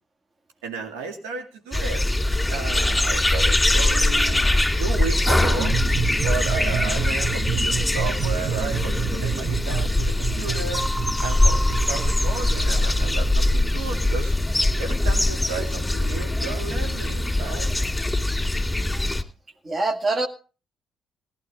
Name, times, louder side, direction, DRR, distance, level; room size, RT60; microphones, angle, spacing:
voice 1, 0.6-2.1 2.5-4.5 4.8-5.8 6.2-10.8 11.2-14.3 14.8-17.7, right 4 dB, 80° right, 4 dB, 2.2 m, -33 dB
sound 1, 1.7-19.2, left 1 dB, 10° left, 2.7 m, -22 dB
sound 2, 5.6-14.1, right 8 dB, 60° right, 0.9 m, -30 dB
sound 3, 10.7-13.3, equal, 20° right, 1.6 m, -34 dB
voice 2, 19.6-20.3, right 2 dB, 40° right, 9 dB, 1.9 m, -24 dB
18.5 x 11.5 x 3.5 m, 0.35 s
hypercardioid pair, 45°, 0 cm